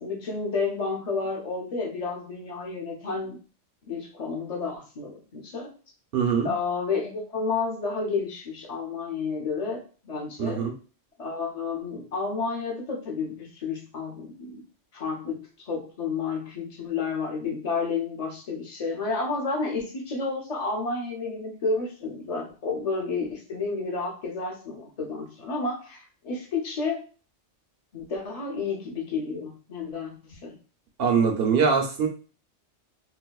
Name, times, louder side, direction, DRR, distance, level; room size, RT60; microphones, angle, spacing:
voice 1, 0.0-3.4 3.9-5.7 6.4-9.8 10.0-10.6 11.2-14.6 14.9-27.1 27.9-30.6, left 4 dB, 35° left, 0 dB, 0.7 m, -31 dB
voice 2, 6.1-6.5 10.4-10.7 31.0-32.1, right 6 dB, 60° right, 3 dB, 0.7 m, -22 dB
4.0 x 2.2 x 2.3 m, 0.37 s
omnidirectional pair, 1.2 m